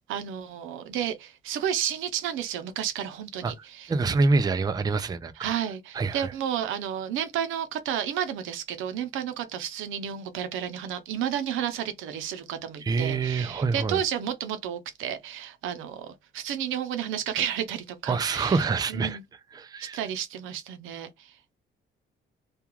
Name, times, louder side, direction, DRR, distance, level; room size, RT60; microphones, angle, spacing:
voice 1, 0.1-3.9 5.4-19.2 19.8-21.3, right 9 dB, 90° right, 0.6 m, -32 dB
voice 2, 3.9-5.5 5.9-6.3 12.8-14.0 18.1-19.2 19.5-20.0, right 4 dB, 20° right, 0.4 m, -26 dB
2.3 x 2.3 x 3.0 m
cardioid pair, 90°, 20 cm